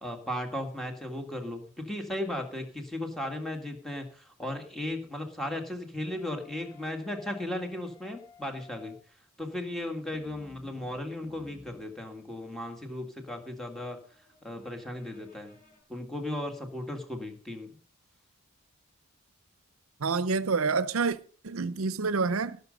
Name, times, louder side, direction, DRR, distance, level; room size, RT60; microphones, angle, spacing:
voice 1, 0.0-9.0 9.4-14.0 14.4-15.6 15.9-17.8, left 1 dB, ahead, 2.0 m, -36 dB
sound 1, 6.0-9.2 10.0-15.8, left 3 dB, 40° left, 6.8 m, -56 dB
voice 2, 20.0-21.2 21.4-22.6, right 4 dB, 75° right, 0.7 m, -27 dB
17.5 x 6.7 x 5.3 m
head